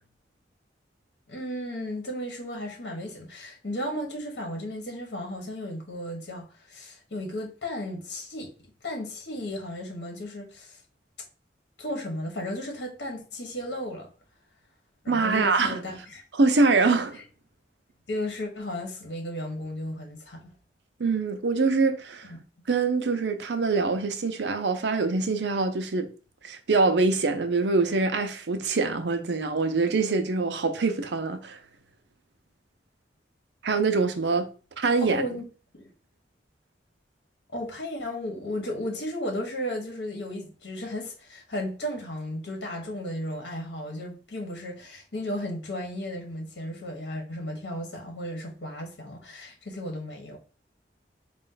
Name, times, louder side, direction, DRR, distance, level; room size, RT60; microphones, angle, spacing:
voice 1, 1.3-8.5 8.8-10.8 11.8-14.1 15.0-16.2 17.1-17.2 18.1-20.5 22.2-22.4 35.0-35.4 35.7-35.9 37.5-50.4, left 1 dB, 70° left, 1.2 m, -34 dB
voice 2, 15.1-15.8 16.4-17.2 21.0-22.3 22.7-26.1 26.4-31.6 33.6-34.5 34.8-35.2, right 3 dB, 75° right, 0.6 m, -24 dB
4.2 x 2.5 x 3.8 m
head